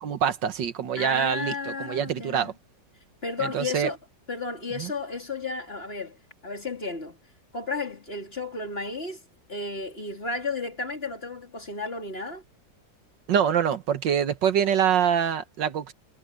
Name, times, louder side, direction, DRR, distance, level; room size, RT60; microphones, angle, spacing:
voice 1, 0.0-2.5 3.4-3.9 4.8-4.9 13.3-15.9, right 8 dB, 85° right, 1.9 m, -25 dB
voice 2, 1.0-2.5 3.2-4.0 4.3-7.2 7.5-9.2 9.5-12.4, left 3 dB, 30° left, 4.1 m, -33 dB
omnidirectional pair, 1.9 m